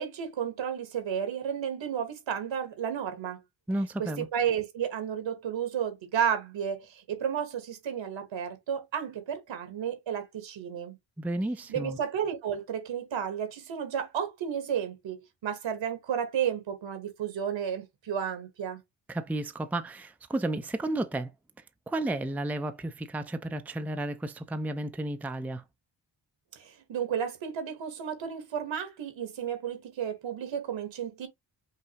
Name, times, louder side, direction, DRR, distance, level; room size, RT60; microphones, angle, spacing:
voice 1, 0.0-3.4 4.0-11.0 11.7-18.8 26.5-31.3, right 8 dB, 80° right, 1.4 m, -32 dB
voice 2, 3.7-4.3 11.2-12.0 19.1-21.3 21.9-25.6, right 1 dB, 5° right, 0.4 m, -32 dB
5.6 x 2.8 x 2.9 m
cardioid pair, 100°, 44 cm